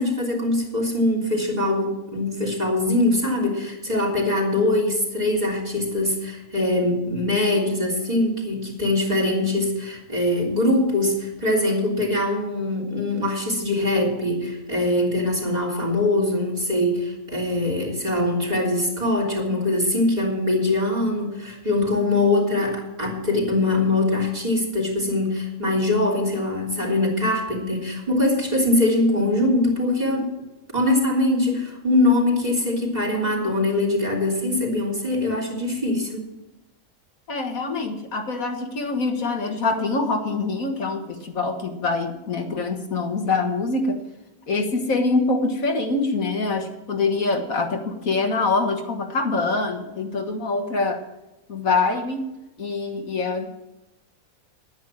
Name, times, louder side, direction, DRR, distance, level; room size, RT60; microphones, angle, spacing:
voice 1, 0.0-30.3 30.7-36.2, left 2 dB, 30° right, -1 dB, 3.5 m, -22 dB
voice 2, 37.3-44.0 44.5-51.0 51.5-52.2 52.6-53.5, left 3 dB, 70° left, 3 dB, 2.1 m, -24 dB
11.5 x 9.7 x 7.5 m, 0.96 s
omnidirectional pair, 1.5 m